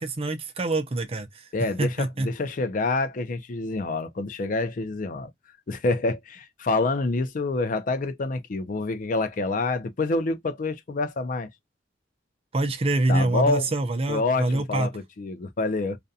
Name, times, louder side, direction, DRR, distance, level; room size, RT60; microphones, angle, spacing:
voice 1, 0.0-1.4 1.8-2.3 12.5-14.9, right 2 dB, 35° right, 0.5 m, -25 dB
voice 2, 1.5-5.3 5.7-11.5 13.1-13.7 14.1-16.0, left 3 dB, 50° left, 0.5 m, -27 dB
2.4 x 2.2 x 2.6 m
head